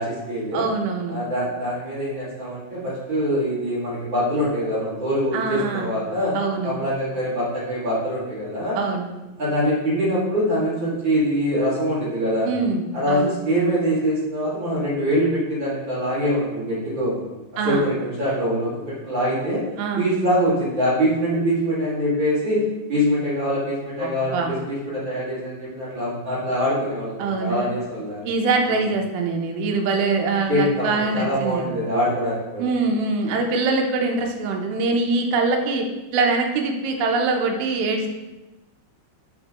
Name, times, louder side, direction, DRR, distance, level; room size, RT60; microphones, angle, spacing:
voice 1, 0.0-0.7 1.1-6.4 6.6-8.8 9.4-12.5 12.9-17.3 17.6-19.6 20.0-22.6 22.9-28.3 30.5-32.7, equal, 35° right, -10 dB, 2.2 m, -24 dB
voice 2, 0.5-1.2 5.3-5.9 6.3-6.8 8.8-9.1 12.5-13.3 17.6-17.8 19.8-20.0 24.0-24.5 27.2-27.7 28.2-31.7 32.6-35.8 36.1-38.1, right 3 dB, 80° right, 2 dB, 2.6 m, -23 dB
6.4 x 6.2 x 3.0 m, 1.1 s
omnidirectional pair, 4.5 m